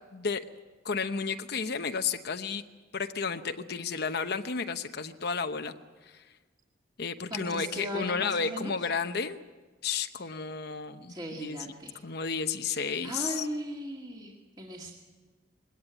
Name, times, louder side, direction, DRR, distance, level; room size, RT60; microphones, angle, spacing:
voice 1, 0.8-2.6 2.9-5.7 6.1-6.2 7.0-9.4 9.8-11.7 12.0-13.5, left 5 dB, 55° left, 8 dB, 0.8 m, -32 dB
voice 2, 7.3-8.7 11.1-12.0 13.0-14.9, equal, 20° right, -1 dB, 2.2 m, -38 dB
21.5 x 18.0 x 9.0 m, 1.3 s
head